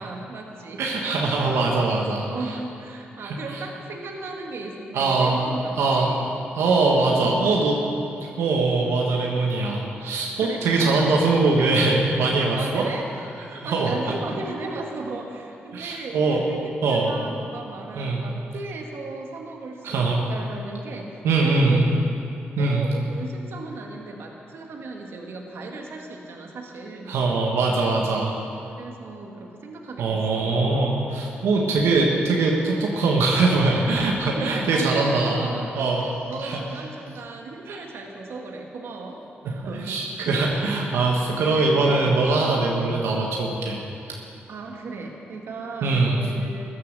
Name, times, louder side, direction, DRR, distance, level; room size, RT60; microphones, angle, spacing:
voice 1, 0.0-0.8 2.2-6.3 7.1-7.5 10.4-11.5 12.5-22.0 22.6-27.2 28.6-30.8 31.7-32.0 34.4-35.9 36.3-40.0 40.3-41.0 41.4-42.0 44.5-46.7, right 3 dB, 70° right, 1 dB, 1.7 m, -36 dB
voice 2, 0.8-2.3 3.2-3.6 4.9-5.4 5.8-6.1 6.6-7.8 8.4-12.8 13.5-14.0 15.7-16.4 16.8-17.1 18.0-18.2 19.8-20.2 21.2-21.9 22.6-22.9 27.1-28.3 30.0-35.5 35.8-36.1 36.4-36.6 37.7-37.8 39.7-43.8 45.8-46.2, right 3 dB, 90° right, -1 dB, 1.6 m, -22 dB
14.5 x 11.0 x 6.7 m, 2.7 s
cardioid pair, 70°, 4 cm